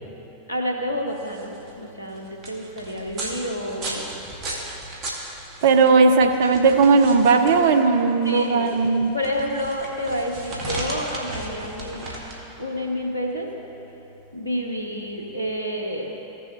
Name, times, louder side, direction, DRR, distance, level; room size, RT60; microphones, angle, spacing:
voice 1, 0.5-4.1 8.2-8.7 9.1-12.1 12.6-13.5 14.3-16.1, equal, 85° left, 1 dB, 1.2 m, -29 dB
sound 1, 1.0-15.5, right 1 dB, 35° right, 1.6 m, -36 dB
voice 2, 5.6-9.1, right 4 dB, 55° right, 7 dB, 0.6 m, -17 dB
15.5 x 6.8 x 3.1 m, 2.9 s
figure-of-eight pair, 90°, 0 cm